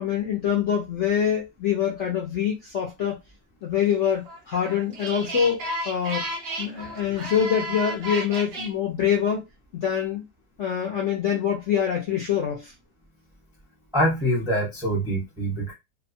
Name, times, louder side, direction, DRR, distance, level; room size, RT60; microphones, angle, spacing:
voice 1, 0.0-3.2 3.6-6.2 6.6-9.4 9.7-10.2 10.6-12.7, left 8 dB, 65° left, 0.7 m, -25 dB
sound 1, 4.0-8.7, right 1 dB, 90° right, 0.5 m, -33 dB
voice 2, 13.9-15.7, equal, 5° right, 0.5 m, -24 dB
2.7 x 2.2 x 2.5 m
omnidirectional pair, 1.8 m